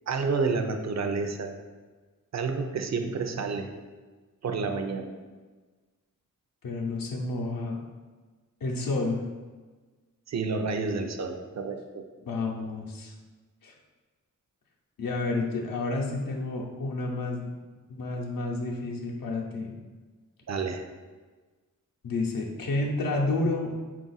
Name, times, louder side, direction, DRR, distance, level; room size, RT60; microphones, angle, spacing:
voice 1, 0.1-1.5 2.3-3.7 4.4-5.1 10.3-12.0 20.5-20.8, right 4 dB, 55° right, 5 dB, 0.5 m, -29 dB
voice 2, 6.6-7.8 8.6-9.2 12.2-13.1 13.6-13.7 15.0-17.5 17.9-19.7 22.0-23.7, left 2 dB, 80° left, -1 dB, 0.6 m, -30 dB
3.9 x 2.5 x 3.9 m, 1.3 s
wide cardioid pair, 75°, 34 cm